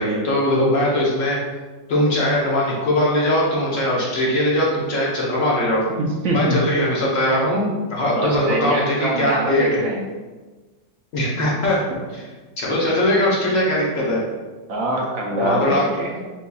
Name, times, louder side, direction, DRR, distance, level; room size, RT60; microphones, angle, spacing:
voice 1, 0.0-1.4 1.9-5.8 6.3-9.8 11.1-11.8 12.1-12.2 12.6-14.2 15.4-15.9, left 1 dB, 55° left, -5 dB, 1.1 m, -20 dB
voice 2, 5.9-6.6 8.1-10.0 11.9-12.0 14.7-16.2, right 1 dB, 65° right, -2 dB, 0.9 m, -24 dB
6.3 x 2.8 x 2.3 m, 1.3 s
omnidirectional pair, 1.9 m